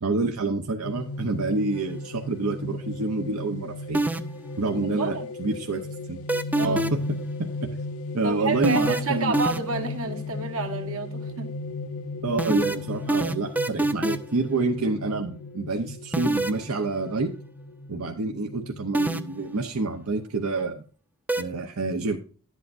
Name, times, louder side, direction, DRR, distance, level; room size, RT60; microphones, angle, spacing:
voice 1, 0.0-4.0 4.6-5.8 6.1-6.2 6.6-7.0 7.4-7.7 8.1-9.3 12.2-17.3 17.9-20.8 21.4-22.2, right 3 dB, 85° right, 0.8 m, -27 dB
sound 1, 0.8-20.0, left 2 dB, 80° left, 0.7 m, -36 dB
sound 2, 3.9-4.5 6.3-7.1 8.6-9.9 12.4-14.4 16.1-16.6 18.9-19.5 21.3-21.4, right 2 dB, 5° right, 0.4 m, -25 dB
voice 2, 4.8-5.3 6.6-6.8 8.2-11.5, right 3 dB, 70° right, 1.3 m, -29 dB
11.0 x 8.4 x 2.5 m
head